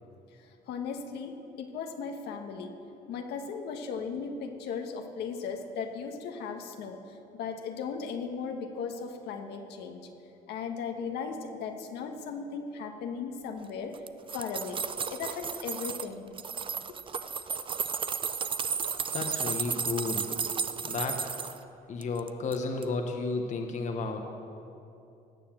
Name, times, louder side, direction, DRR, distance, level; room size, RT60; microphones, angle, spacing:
voice 1, 0.7-2.7 3.1-7.0 7.4-10.1 10.5-14.0 14.3-14.8 15.1-16.3, left 5 dB, 75° left, 4 dB, 1.4 m, -37 dB
sound 1, 13.9-16.1 16.4-21.6 22.0-22.6 22.8-22.9, right 6 dB, 30° right, 0.5 m, -33 dB
voice 2, 19.1-20.3 20.8-21.3 21.9-24.2, left 4 dB, 45° left, 4 dB, 1.1 m, -32 dB
18.0 x 7.0 x 7.4 m, 2.8 s
cardioid pair, 110°, 17 cm